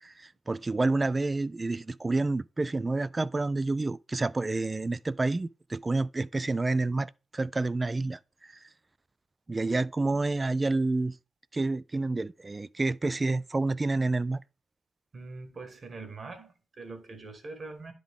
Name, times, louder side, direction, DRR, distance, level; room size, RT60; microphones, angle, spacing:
voice 1, 0.0-8.2 9.5-11.1 11.5-14.4, right 3 dB, 30° right, 0.3 m, -29 dB
voice 2, 15.1-17.9, right 3 dB, 50° right, 1.5 m, -43 dB
10.0 x 3.8 x 3.6 m
supercardioid pair, 55°, 0 cm